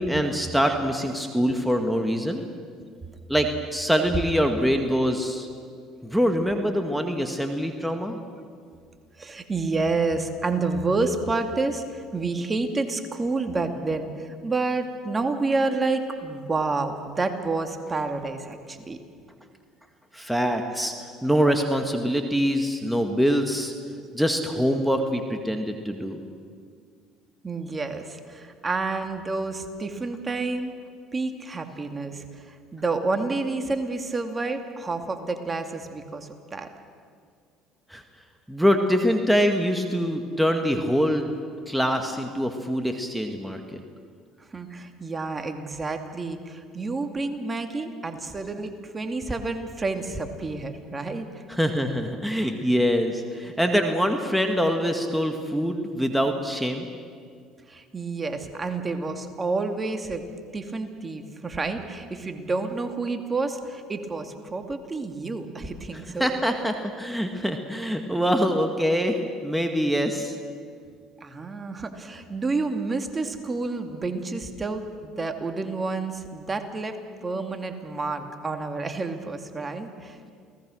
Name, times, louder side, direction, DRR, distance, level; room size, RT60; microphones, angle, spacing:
voice 1, 0.0-2.4 3.3-5.5 6.0-8.2 20.1-23.7 24.1-26.2 37.9-38.0 38.5-41.3 41.7-43.8 51.5-56.9 65.9-70.4, equal, ahead, 4 dB, 2.0 m, -24 dB
voice 2, 9.2-19.0 27.4-30.8 31.1-36.7 44.5-51.3 57.7-60.2 60.5-66.3 71.2-77.0 77.2-80.2, right 3 dB, 25° right, 6 dB, 2.4 m, -29 dB
29.0 x 18.5 x 6.5 m, 2.1 s
hypercardioid pair, 75°, 0 cm